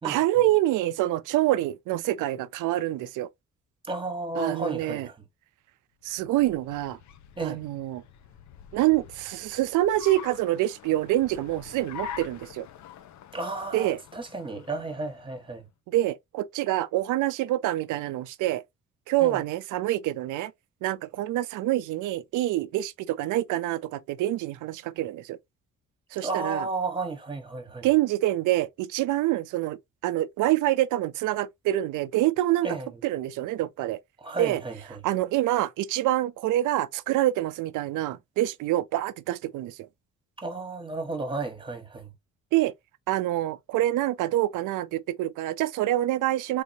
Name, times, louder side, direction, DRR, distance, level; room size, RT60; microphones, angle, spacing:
voice 1, 0.0-3.3 4.4-5.1 6.0-7.0 7.4-8.0 8.7-12.7 13.7-14.0 15.9-18.6 19.1-20.5 20.8-25.4 26.1-26.7 27.8-29.8 30.0-32.7 33.0-34.0 34.4-34.6 35.0-39.8 42.5-42.7 43.1-46.6, right 15 dB, 85° right, 0.5 m, -26 dB
voice 2, 3.8-5.2 7.4-7.6 13.3-15.7 19.2-19.4 26.2-27.9 32.6-33.0 34.2-35.0 40.4-42.1, right 3 dB, 15° right, 1.3 m, -33 dB
Car, 6.0-15.6, left 8 dB, 70° left, 0.6 m, -45 dB
3.7 x 2.9 x 2.6 m
cardioid pair, 90°, 30 cm